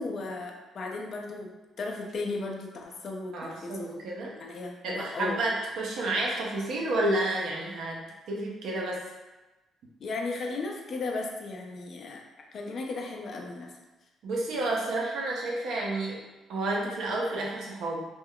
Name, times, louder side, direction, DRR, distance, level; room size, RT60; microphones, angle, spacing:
voice 1, 0.0-1.5 1.8-5.4 10.0-12.2 12.5-13.7, left 3 dB, 55° left, 1 dB, 0.5 m, -35 dB
voice 2, 3.3-4.4 4.8-8.0 8.3-9.0 14.2-16.2 16.5-18.0, right 2 dB, 70° right, -2 dB, 0.6 m, -30 dB
2.3 x 2.1 x 3.7 m, 1.1 s
cardioid pair, 80°, 0 cm